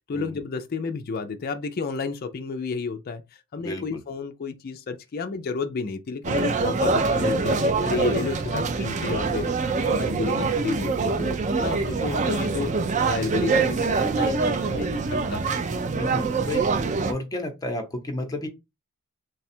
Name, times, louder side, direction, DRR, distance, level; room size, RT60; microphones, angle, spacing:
voice 1, 0.1-9.6 9.9-12.7 13.0-15.5, left 4 dB, 40° left, 0.4 m, -31 dB
voice 2, 3.6-4.0 16.0-16.6 17.1-18.5, left 1 dB, 15° left, 0.7 m, -31 dB
sound 1, 6.2-17.1, right 4 dB, 35° right, 0.4 m, -24 dB
3.2 x 2.3 x 4.2 m
head